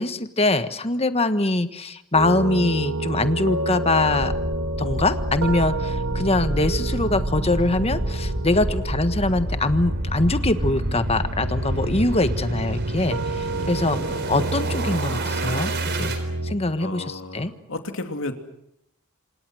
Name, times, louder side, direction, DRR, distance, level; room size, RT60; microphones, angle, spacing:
voice 1, 0.0-4.3 4.8-15.7 16.0-16.1 16.4-17.5, left 2 dB, 30° left, 10 dB, 1.4 m, -23 dB
sound 1, 2.1-16.6, right 2 dB, 90° right, 2.0 m, -29 dB
sound 2, 4.1-16.2, right 1 dB, 55° right, 4.3 m, -29 dB
voice 2, 16.8-18.3, left 2 dB, 65° left, 6 dB, 2.8 m, -33 dB
27.5 x 27.5 x 6.4 m, 0.77 s
head